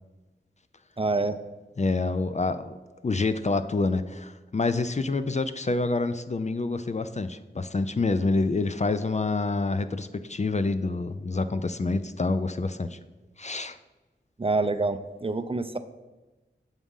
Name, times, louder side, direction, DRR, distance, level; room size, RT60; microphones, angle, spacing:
voice 1, 1.0-1.3 14.4-15.8, right 3 dB, 30° right, 10 dB, 0.4 m, -26 dB
voice 2, 1.8-2.8 3.0-13.0 13.4-13.8, left 3 dB, 35° left, 11 dB, 0.4 m, -27 dB
7.2 x 3.7 x 5.4 m, 1.1 s
wide cardioid pair, 55°, 20 cm